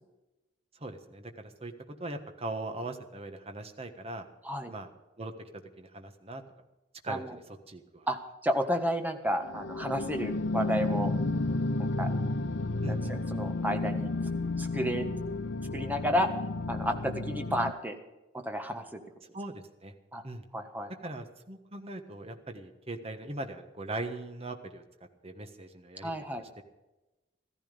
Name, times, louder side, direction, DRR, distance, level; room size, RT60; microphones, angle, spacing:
voice 1, 0.8-4.3 4.7-4.9 5.2-5.3 5.8-6.4 7.0-7.4 7.7-8.1 12.8-13.1 19.3-19.9 20.2-20.4 21.0-24.8 25.2-26.6, right 2 dB, 35° right, 6 dB, 1.4 m, -40 dB
voice 2, 8.4-11.1 11.8-12.1 12.9-14.1 14.6-15.1 15.7-16.3 16.7-17.9 18.3-19.0 20.1-20.2 20.5-20.9 26.0-26.4, equal, 10° right, 4 dB, 1.4 m, -31 dB
sound 1, 9.4-17.7, left 2 dB, 85° left, 0.7 m, -32 dB
14.5 x 14.5 x 5.2 m, 1.0 s
head